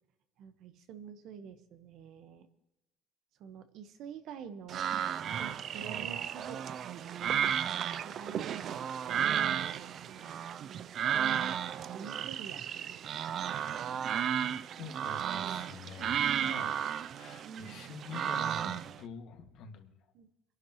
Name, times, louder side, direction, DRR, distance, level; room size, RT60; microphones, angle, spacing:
voice 1, 0.4-2.5 3.4-4.9 5.3-6.6 6.9-7.2 8.0-10.5 11.7-13.6 20.1-20.3, right 7 dB, 65° right, 10 dB, 1.1 m, -48 dB
sound 1, 4.7-19.0, right 9 dB, 45° right, 0.4 m, -33 dB
voice 2, 10.2-10.5 14.8-16.8 17.2-19.9, left 6 dB, 65° left, 4 dB, 1.9 m, -47 dB
23.5 x 11.5 x 3.0 m, 0.95 s
cardioid pair, 145°, 0 cm